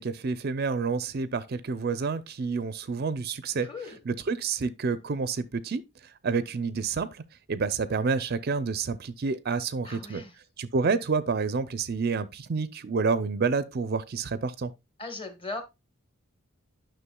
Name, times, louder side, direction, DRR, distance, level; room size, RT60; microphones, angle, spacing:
voice 1, 0.0-3.7 4.1-5.8 6.2-7.2 7.5-10.2 10.6-14.7, right 4 dB, 45° right, 0.4 m, -29 dB
voice 2, 3.6-4.0 9.8-10.4 15.0-15.6, left 3 dB, 25° left, 1.2 m, -38 dB
9.8 x 6.1 x 2.2 m
head